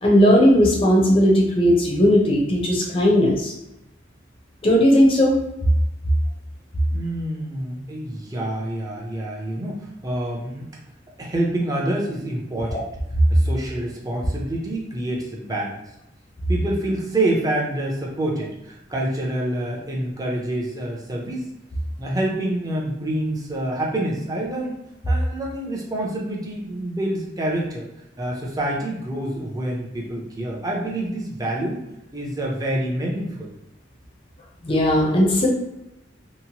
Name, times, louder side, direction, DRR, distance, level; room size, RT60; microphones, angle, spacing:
voice 1, 0.0-3.5 4.6-5.4 12.7-12.8 34.6-35.5, equal, 30° left, -2 dB, 0.6 m, -17 dB
voice 2, 6.9-10.7 11.2-12.8 13.3-15.8 16.5-21.5 22.0-24.7 25.1-27.9 28.2-31.8 32.1-33.5, right 1 dB, 20° right, -2 dB, 0.5 m, -27 dB
2.9 x 2.1 x 2.8 m, 0.89 s
head